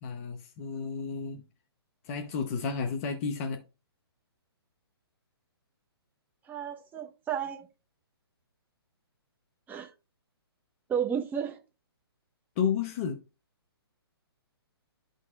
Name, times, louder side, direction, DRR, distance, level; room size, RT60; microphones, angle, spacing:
voice 1, 0.0-1.4 2.0-3.6 12.6-13.2, left 6 dB, 35° left, 0.9 m, -32 dB
voice 2, 6.4-7.7 9.7-9.9 10.9-11.6, right 8 dB, 15° right, 1.2 m, -32 dB
12.0 x 4.0 x 2.5 m
hypercardioid pair, 145°, 13 cm